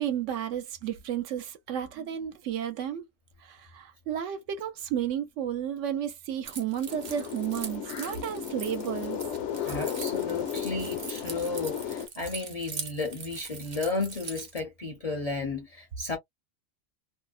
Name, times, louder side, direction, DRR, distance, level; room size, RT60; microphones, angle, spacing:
voice 1, 0.0-3.0 3.4-9.2, right 9 dB, 75° right, 0.9 m, -32 dB
Keys jangling, 6.4-14.6, right 5 dB, 45° right, 0.6 m, -42 dB
sound 1, 6.9-12.1, left 8 dB, 70° left, 0.8 m, -34 dB
voice 2, 9.6-16.2, left 3 dB, 40° left, 0.6 m, -33 dB
2.6 x 2.0 x 2.3 m
omnidirectional pair, 1.3 m